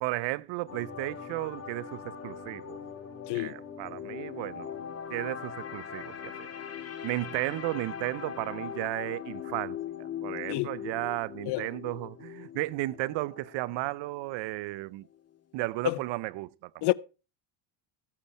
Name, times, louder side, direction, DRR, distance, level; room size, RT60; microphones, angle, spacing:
voice 1, 0.0-2.8 3.3-4.7 5.1-6.3 7.0-15.1 15.5-16.9, right 19 dB, 65° right, 0.8 m, -34 dB
sound 1, 0.7-14.8 15.1-15.4, left 8 dB, 30° left, 2.9 m, -41 dB
voice 2, 3.3-3.5 10.5-10.7 11.5-11.7 15.8-16.0 16.8-16.9, left 19 dB, 55° left, 0.8 m, -28 dB
15.5 x 8.8 x 4.3 m
supercardioid pair, 110°, 47 cm